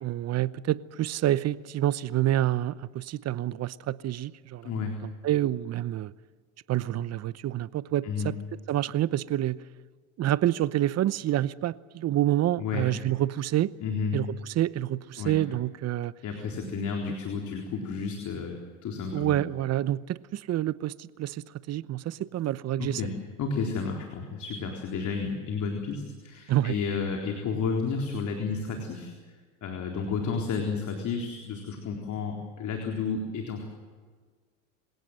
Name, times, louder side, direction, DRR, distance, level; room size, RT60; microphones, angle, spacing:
voice 1, 0.0-4.7 5.2-6.1 6.7-8.3 8.7-9.6 10.2-13.7 14.1-16.1 19.1-23.0 26.5-26.7, right 13 dB, 40° right, 18 dB, 0.8 m, -28 dB
voice 2, 4.6-5.0 8.0-8.3 12.6-12.9 13.8-14.2 15.2-15.4 16.2-19.4 22.8-29.1 29.6-33.6, left 5 dB, 45° left, 2 dB, 4.0 m, -32 dB
26.0 x 17.5 x 7.9 m, 1.5 s
supercardioid pair, 95°, 41 cm